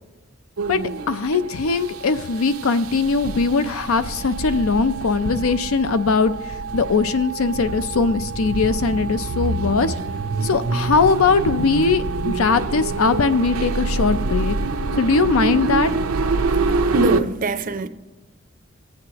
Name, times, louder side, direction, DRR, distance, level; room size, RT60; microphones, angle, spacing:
sound 1, 0.6-17.2, right 3 dB, 85° right, 0.6 m, -26 dB
voice 1, 1.1-9.9 10.4-14.6 15.0-15.9, left 4 dB, 75° left, 0.5 m, -20 dB
voice 2, 16.9-17.9, right 2 dB, 40° right, 0.5 m, -23 dB
20.0 x 7.9 x 2.9 m
head